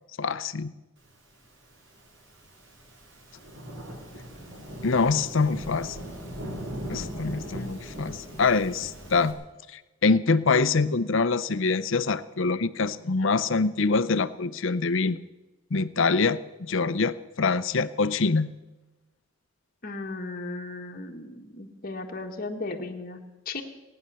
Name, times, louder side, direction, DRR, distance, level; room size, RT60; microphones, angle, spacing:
voice 1, 0.2-0.7 4.8-6.0 6.9-9.4 9.7-15.2 15.7-18.5, left 4 dB, 60° left, 15 dB, 0.6 m, -25 dB
Thunderstorm / Rain, 1.6-9.3, equal, 55° right, 3.3 m, -39 dB
voice 2, 19.8-23.6, left 3 dB, 40° left, 3 dB, 1.5 m, -36 dB
19.0 x 9.8 x 6.8 m, 1.1 s
head